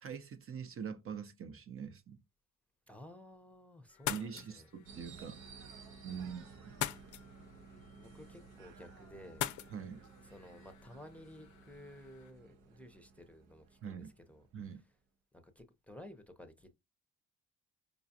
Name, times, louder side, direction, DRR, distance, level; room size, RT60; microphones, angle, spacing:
voice 1, 0.0-2.2 4.1-5.4 6.0-6.7 9.7-10.0 13.8-14.1 14.5-14.8, right 7 dB, 45° right, 0.7 m, -44 dB
voice 2, 2.9-4.7 6.1-6.4 8.0-9.4 10.3-14.0 14.3-14.5 15.3-16.7, left 1 dB, 5° left, 0.7 m, -54 dB
sound 1, 3.9-12.3, left 12 dB, 75° left, 0.5 m, -45 dB
sound 2, 4.9-14.8, right 5 dB, 85° right, 0.8 m, -56 dB
5.0 x 2.3 x 2.7 m
cardioid pair, 90°, 30 cm